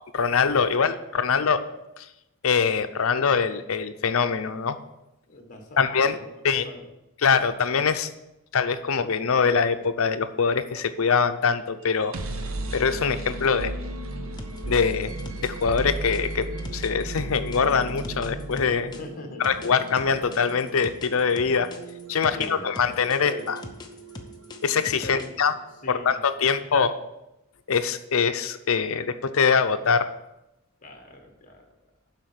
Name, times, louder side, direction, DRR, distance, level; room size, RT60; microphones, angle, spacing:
voice 1, 0.1-1.6 2.0-2.1 2.4-4.8 5.8-6.2 6.4-6.7 7.2-8.1 8.5-12.1 12.7-13.7 14.7-15.1 15.4-18.9 19.4-21.7 22.1-23.6 24.6-25.5 25.9-27.0 27.7-30.1, left 5 dB, 70° left, 10 dB, 0.6 m, -23 dB
voice 2, 5.3-6.8 19.0-19.4 22.3-23.5 25.0-25.3 25.8-26.6 30.8-31.7, left 1 dB, 35° left, 4 dB, 1.4 m, -42 dB
sound 1, 11.8-25.7, right 1 dB, 65° right, 0.7 m, -36 dB
sound 2, 14.4-19.0 19.4-22.5 22.7-25.5, left 2 dB, 20° left, 0.7 m, -41 dB
7.5 x 5.5 x 6.7 m, 0.91 s
head